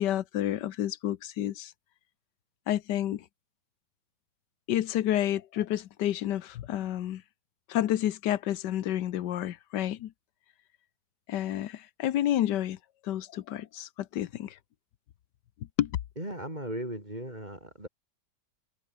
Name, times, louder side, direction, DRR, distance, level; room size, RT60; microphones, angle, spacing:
voice 1, 0.0-1.7 2.7-3.2 4.7-7.2 7.7-10.1 11.3-12.8 13.0-14.6 15.8-15.9, left 12 dB, 90° left, 1.5 m, -30 dB
voice 2, 16.2-17.9, right 1 dB, 25° right, 6.9 m, -37 dB
omnidirectional pair, 1.8 m